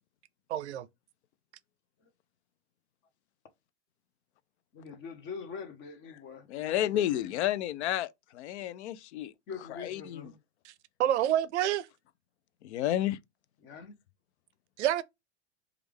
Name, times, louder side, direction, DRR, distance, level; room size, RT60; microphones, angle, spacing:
voice 1, 0.5-0.9 11.0-11.9 14.8-15.0, right 11 dB, 85° right, 0.5 m, -27 dB
voice 2, 4.7-7.5 9.5-10.4 13.6-14.0, left 5 dB, 35° left, 0.8 m, -44 dB
voice 3, 6.5-9.3 9.7-10.3 12.6-13.2, left 12 dB, 80° left, 0.5 m, -31 dB
3.2 x 2.4 x 3.3 m
hypercardioid pair, 115°, 33 cm